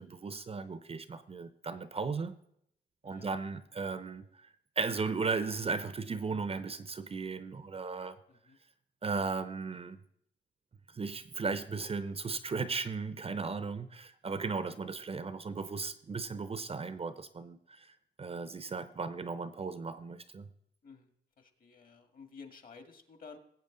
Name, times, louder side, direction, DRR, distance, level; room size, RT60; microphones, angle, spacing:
voice 1, 0.0-2.4 3.0-8.2 9.0-10.0 10.9-20.5, right 4 dB, 30° right, 0.7 m, -36 dB
voice 2, 3.0-3.6 8.3-8.6 14.7-14.8 20.8-23.4, left 5 dB, 45° left, 1.8 m, -53 dB
19.5 x 7.8 x 3.9 m
cardioid pair, 90°, 20 cm